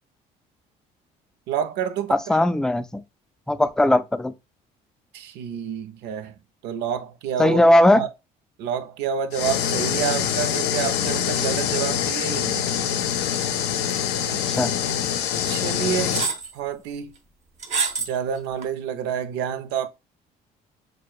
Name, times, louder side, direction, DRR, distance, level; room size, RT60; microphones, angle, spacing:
voice 1, 1.5-2.4 5.1-6.3 6.6-7.6 8.0-8.1 8.6-12.8 15.4-17.1 18.1-19.9, right 8 dB, 90° right, 0.7 m, -28 dB
voice 2, 2.1-3.0 3.5-4.3 7.4-8.0 14.3-14.7, left 1 dB, 5° left, 0.3 m, -19 dB
sound 1, 9.3-16.3, left 9 dB, 85° left, 0.5 m, -25 dB
sound 2, 13.9-14.3 14.5-14.6 15.5-15.6 16.1-16.5 17.6-18.2 18.6-18.7, right 5 dB, 45° right, 0.8 m, -26 dB
6.2 x 2.2 x 2.4 m
cardioid pair, 110°, 17 cm